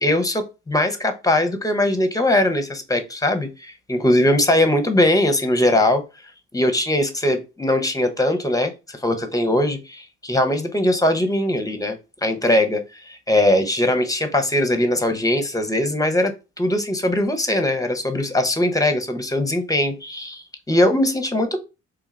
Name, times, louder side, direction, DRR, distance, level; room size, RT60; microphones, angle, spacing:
voice 1, 0.0-6.0 6.5-16.3 16.6-21.6, left 1 dB, 10° left, 8 dB, 0.8 m, -20 dB
3.5 x 2.3 x 3.2 m, 0.27 s
hypercardioid pair, 40°, 36 cm